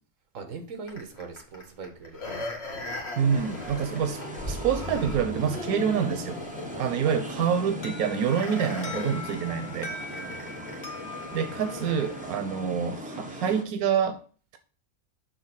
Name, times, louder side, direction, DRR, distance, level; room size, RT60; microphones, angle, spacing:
voice 1, 0.3-2.4 2.7-2.9 3.8-4.1 6.6-6.9 10.1-10.7, right 5 dB, 65° right, 1.6 m, -42 dB
sound 1, 0.9-12.3 12.8-12.9, left 1 dB, 45° left, 1.7 m, -39 dB
sound 2, 3.2-13.6, equal, 5° right, 0.7 m, -40 dB
voice 2, 3.2-4.2 4.5-6.4 6.8-9.9 11.3-14.2, right 7 dB, 90° right, 1.2 m, -27 dB
Alarm, 7.8-12.6, left 2 dB, 85° left, 1.8 m, -42 dB
6.5 x 3.4 x 5.9 m
omnidirectional pair, 1.5 m